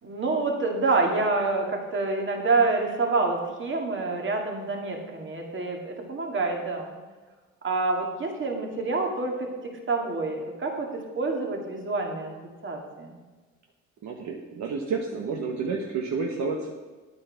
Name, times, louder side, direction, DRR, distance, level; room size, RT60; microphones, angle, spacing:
voice 1, 0.0-6.9 7.6-9.5 9.9-12.3 12.6-13.2, right 3 dB, 40° right, 1 dB, 2.4 m, -27 dB
voice 2, 14.0-16.7, right 4 dB, 65° right, 1 dB, 1.3 m, -30 dB
9.6 x 8.7 x 5.9 m, 1.3 s
cardioid pair, 90°, 30 cm